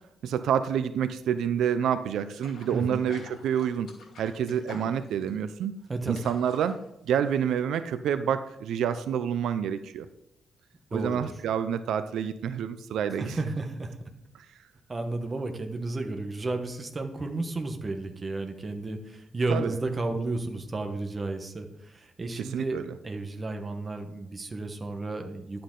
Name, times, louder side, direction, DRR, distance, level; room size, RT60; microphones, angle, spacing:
voice 1, 0.2-3.9 4.2-5.7 6.1-10.1 10.9-13.4 14.3-14.5 19.5-19.7 22.4-22.9, right 8 dB, 85° right, 11 dB, 0.6 m, -28 dB
sound 1, 2.4-7.6, left 3 dB, 70° left, 2.4 m, -48 dB
voice 2, 2.7-3.0 5.9-6.2 10.9-11.2 13.2-13.9 14.9-25.6, right 2 dB, 25° right, 5 dB, 1.1 m, -32 dB
11.0 x 8.6 x 3.9 m, 0.79 s
wide cardioid pair, 155°, 0 cm